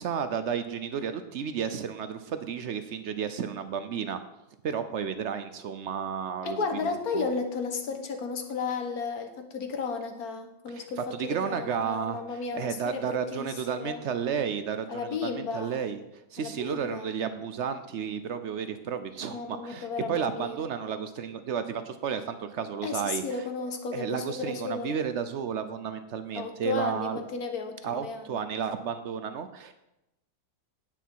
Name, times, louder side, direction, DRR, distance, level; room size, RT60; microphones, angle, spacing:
voice 1, 0.0-4.2 4.6-6.6 6.8-7.3 10.7-12.2 12.5-23.2 23.9-27.2 27.8-29.7, right 7 dB, 75° right, 10 dB, 0.6 m, -32 dB
voice 2, 6.4-14.0 14.9-15.8 16.4-17.1 19.3-20.7 22.8-25.0 26.3-28.4, left 4 dB, 55° left, 5 dB, 1.5 m, -34 dB
9.7 x 9.1 x 4.6 m, 0.90 s
omnidirectional pair, 2.0 m